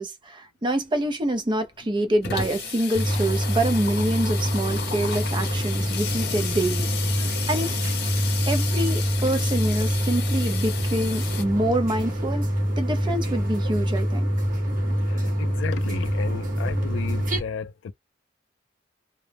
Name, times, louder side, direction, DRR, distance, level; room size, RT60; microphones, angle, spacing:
voice 1, 0.0-6.9 7.5-7.9 8.5-12.5 12.7-14.3, right 1 dB, 25° right, 0.5 m, -26 dB
Water tap faucet / Sink (filling or washing), 0.8-0.9 1.2-1.3 1.5-11.4, left 7 dB, 60° left, 0.7 m, -33 dB
sound 1, 2.9-17.4, equal, 45° right, 0.9 m, -25 dB
voice 2, 15.0-17.9, left 6 dB, 85° left, 0.3 m, -34 dB
2.2 x 2.0 x 3.3 m
head